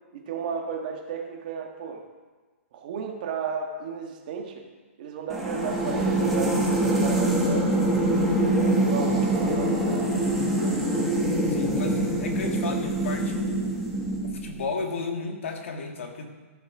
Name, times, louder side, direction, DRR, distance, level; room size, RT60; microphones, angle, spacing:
voice 1, 0.1-2.0 2.7-4.7 5.0-8.0 8.6-11.1, right 6 dB, 35° right, 2 dB, 1.5 m, -34 dB
sound 1, 5.3-14.6, right 1 dB, ahead, 1.3 m, -24 dB
voice 2, 11.5-13.4 14.2-16.3, left 4 dB, 60° left, 3 dB, 1.9 m, -33 dB
14.0 x 7.2 x 5.9 m, 1.3 s
hypercardioid pair, 175°, 8 cm